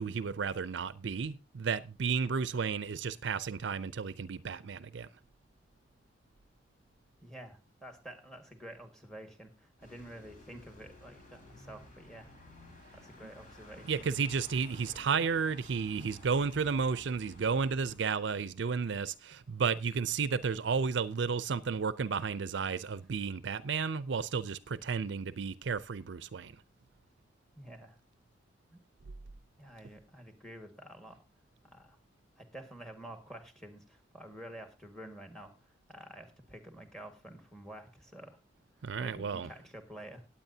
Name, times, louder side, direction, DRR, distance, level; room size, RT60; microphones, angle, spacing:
voice 1, 0.0-5.1 13.9-26.5 38.8-39.5, right 5 dB, 70° right, 0.5 m, -32 dB
voice 2, 7.2-12.3 12.9-14.1 14.5-15.1 24.7-24.8 27.6-28.0 28.7-28.8 29.6-31.2 31.7-32.0 32.4-38.4 39.0-40.3, right 1 dB, 5° left, 1.7 m, -49 dB
sound 1, 9.8-18.0, left 1 dB, 45° left, 3.4 m, -54 dB
18.0 x 8.6 x 2.7 m
head